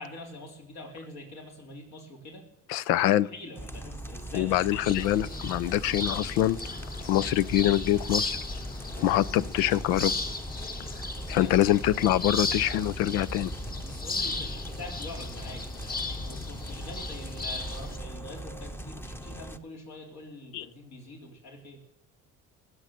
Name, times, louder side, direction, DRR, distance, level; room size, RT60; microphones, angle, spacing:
voice 1, 0.0-2.4 3.3-4.6 11.2-11.6 13.8-21.8, left 1 dB, 65° left, 1 dB, 4.2 m, -44 dB
voice 2, 2.7-3.3 4.3-6.6 7.1-8.4 9.0-10.1 11.3-13.5 20.5-20.6, left 13 dB, 85° left, 19 dB, 0.6 m, -24 dB
sound 1, 3.6-19.6, right 1 dB, 10° left, 0.9 m, -41 dB
sound 2, 4.8-18.0, left 3 dB, 30° left, 1.6 m, -35 dB
18.5 x 8.1 x 7.5 m, 0.91 s
supercardioid pair, 80°, 30 cm